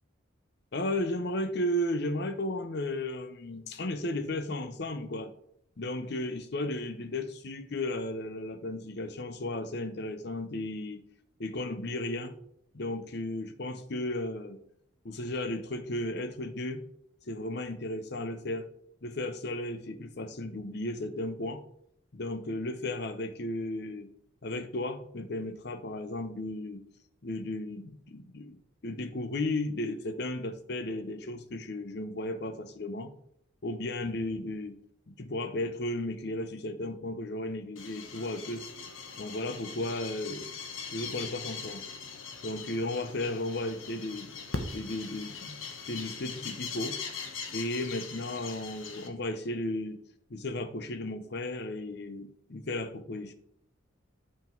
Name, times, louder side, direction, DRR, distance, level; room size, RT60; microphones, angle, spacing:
voice 1, 0.7-5.3 5.8-11.0 11.4-12.4 12.7-14.6 15.0-16.8 17.2-18.7 19.0-21.6 22.1-24.1 24.4-26.8 27.2-33.1 33.6-34.8 35.1-38.6 39.2-40.5 40.9-41.8 42.4-44.4 44.7-45.6 45.9-47.0 47.5-50.0 50.3-53.3, left 1 dB, 55° left, 0.7 m, -34 dB
sound 1, 37.8-49.1, left 5 dB, 80° left, 1.1 m, -41 dB
7.5 x 5.8 x 4.5 m
head